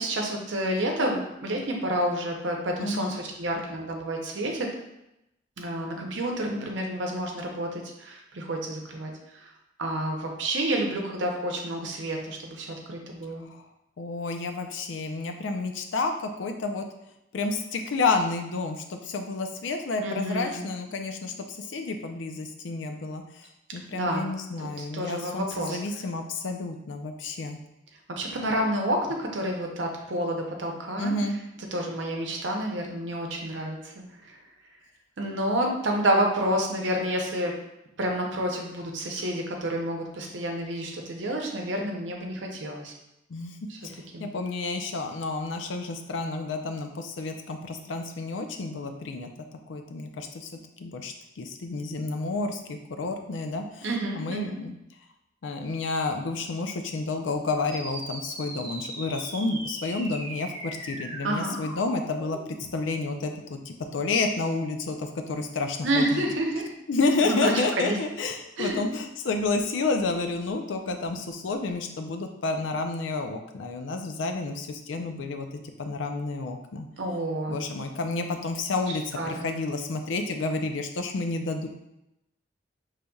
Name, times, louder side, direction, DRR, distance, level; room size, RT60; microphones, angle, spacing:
voice 1, 0.0-4.7 5.6-9.5 9.8-13.5 20.0-20.6 23.9-24.3 24.6-25.8 28.1-31.1 31.6-34.4 35.2-37.5 38.0-42.9 43.7-43.8 44.1-44.3 53.8-54.6 61.2-61.6 65.8-66.7 67.2-68.0 68.6-68.8 77.0-77.6 78.9-79.5, right 1 dB, 70° right, 1 dB, 0.7 m, -29 dB
voice 2, 2.8-3.2 13.5-13.6 14.0-16.8 17.3-27.6 31.0-31.3 43.3-43.5 43.8-49.3 49.7-50.5 50.8-53.9 54.2-54.8 55.4-66.2 66.9-76.9 77.5-81.7, left 3 dB, 75° left, 5 dB, 0.5 m, -30 dB
sound 1, 57.7-62.7, right 1 dB, 35° right, 1.4 m, -39 dB
5.2 x 3.2 x 2.3 m, 0.87 s
head